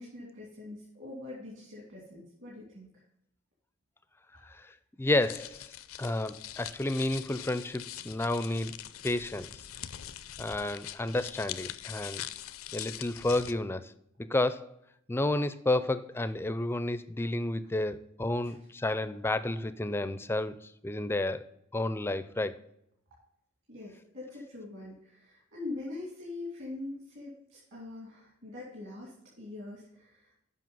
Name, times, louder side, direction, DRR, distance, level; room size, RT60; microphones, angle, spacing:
voice 1, 0.0-2.9 18.4-18.5 23.7-30.3, left 2 dB, 60° right, -4 dB, 2.6 m, -43 dB
voice 2, 4.4-5.7 6.0-8.8 9.0-9.6 10.4-12.3 12.7-13.9 14.2-14.7 15.1-22.6, left 2 dB, 10° left, 14 dB, 0.4 m, -31 dB
sound 1, 5.1-13.5, left 12 dB, 75° left, 0.5 m, -43 dB
7.6 x 5.7 x 5.4 m, 0.78 s
head